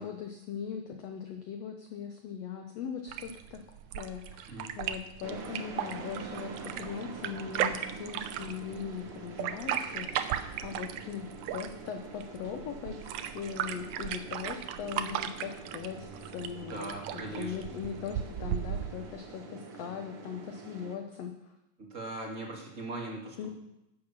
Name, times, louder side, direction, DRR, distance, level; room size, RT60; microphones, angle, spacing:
voice 1, 0.0-3.6 3.9-21.5 23.4-23.5, left 7 dB, 75° left, 5 dB, 1.5 m, -40 dB
sound 1, 3.1-19.1, right 10 dB, 80° right, 1.6 m, -37 dB
voice 2, 4.5-4.8 16.7-17.5 21.8-23.5, right 2 dB, 25° right, -1 dB, 2.0 m, -40 dB
sound 2, 5.2-21.0, right 5 dB, 60° right, 1.5 m, -46 dB
11.0 x 8.1 x 6.9 m, 0.89 s
omnidirectional pair, 4.0 m